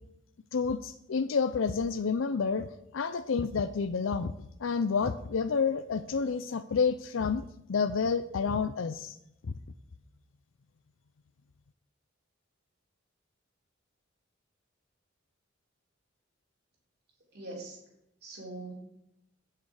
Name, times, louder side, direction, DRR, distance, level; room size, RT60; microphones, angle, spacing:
voice 1, 0.5-2.7 2.9-4.3 4.6-7.4 7.7-9.2, left 5 dB, 80° left, 11 dB, 0.5 m, -29 dB
voice 2, 17.3-17.8 18.2-18.8, right 2 dB, 55° right, -2 dB, 3.6 m, -42 dB
16.5 x 6.6 x 4.9 m, 0.81 s
head